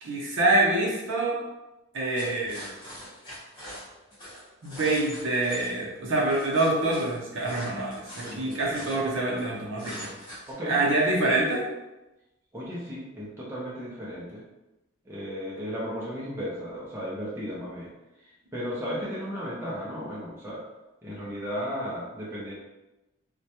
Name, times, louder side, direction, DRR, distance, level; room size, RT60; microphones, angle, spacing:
voice 1, 0.0-1.4 1.9-2.7 4.6-10.1 10.7-11.6, right 2 dB, 60° right, -3 dB, 0.6 m, -26 dB
sound 1, 2.1-5.7 6.1-9.4 9.8-10.5, equal, 25° left, 0.7 m, -43 dB
voice 2, 8.2-9.0 10.5-10.8 12.5-14.4 15.1-17.9 18.5-20.6 21.0-22.5, equal, 10° right, -7 dB, 0.4 m, -35 dB
2.2 x 2.1 x 2.8 m, 1.0 s
head